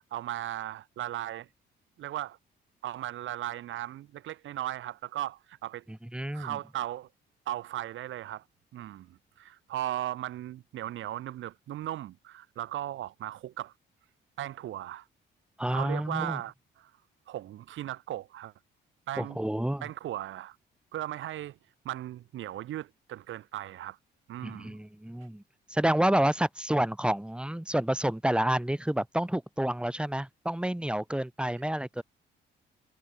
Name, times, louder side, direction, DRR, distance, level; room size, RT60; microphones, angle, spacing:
voice 1, 0.1-1.5 2.0-2.4 2.8-5.8 6.3-7.1 7.5-8.4 8.7-13.7 14.4-15.1 15.7-16.9 17.3-18.5 19.1-19.4 19.8-20.6 20.9-21.6 21.9-24.0 24.3-24.8, right 13 dB, 75° right, 1.8 m, -37 dB
voice 2, 6.1-6.6 15.6-16.4 19.2-19.8 24.4-25.4 25.7-32.0, right 1 dB, 5° right, 4.4 m, -29 dB
cardioid pair, 90°, 20 cm